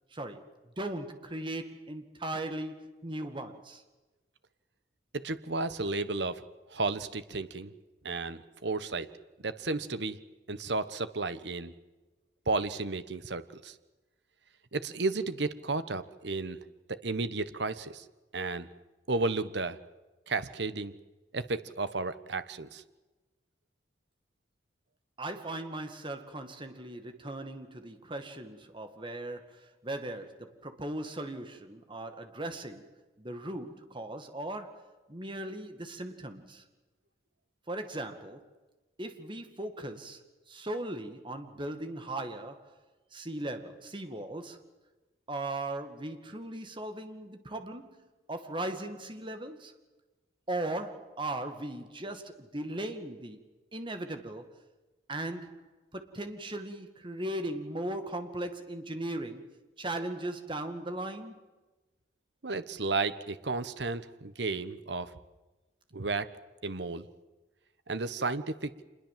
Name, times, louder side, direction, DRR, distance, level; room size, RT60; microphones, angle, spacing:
voice 1, 0.1-3.8 25.2-36.6 37.7-38.5 39.0-40.2 40.5-42.8 43.1-44.6 45.3-49.7 50.5-53.4 53.7-54.5 55.1-59.5 59.8-61.4, right 1 dB, 30° right, 2.1 m, -38 dB
voice 2, 5.2-6.4 6.7-7.7 8.0-9.1 9.4-10.2 10.5-11.7 12.5-13.7 14.7-16.6 16.9-18.0 18.3-18.7 19.1-19.8 20.3-20.9 21.3-22.8 62.4-65.1 65.9-66.3 66.6-67.1 67.9-68.7, right 3 dB, 70° right, 1.3 m, -33 dB
26.5 x 21.5 x 7.6 m
head